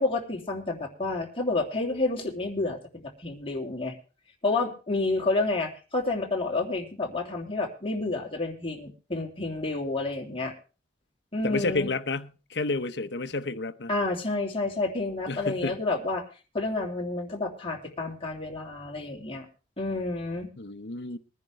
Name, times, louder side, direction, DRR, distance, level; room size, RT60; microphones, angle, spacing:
voice 1, 0.0-3.9 4.4-10.5 11.3-11.9 13.9-16.2 16.5-19.5 19.8-20.5, left 2 dB, 30° left, 2.9 m, -29 dB
voice 2, 11.4-13.9 15.3-15.8 20.6-21.2, left 3 dB, 70° left, 0.9 m, -30 dB
21.5 x 10.5 x 3.3 m
head